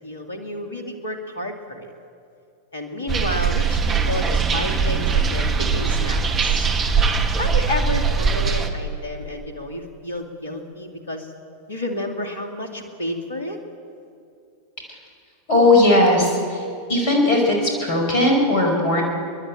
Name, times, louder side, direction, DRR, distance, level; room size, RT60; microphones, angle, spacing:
voice 1, 0.0-1.9 2.7-6.7 7.0-11.3 11.7-13.6, left 1 dB, 70° left, 5 dB, 2.7 m, -31 dB
sound 1, 3.1-8.7, right 5 dB, 25° right, 1.7 m, -21 dB
voice 2, 15.5-16.6 16.9-19.0, left 2 dB, 45° left, 0 dB, 5.3 m, -17 dB
30.0 x 11.5 x 9.1 m, 2.5 s
figure-of-eight pair, 90°, 0 cm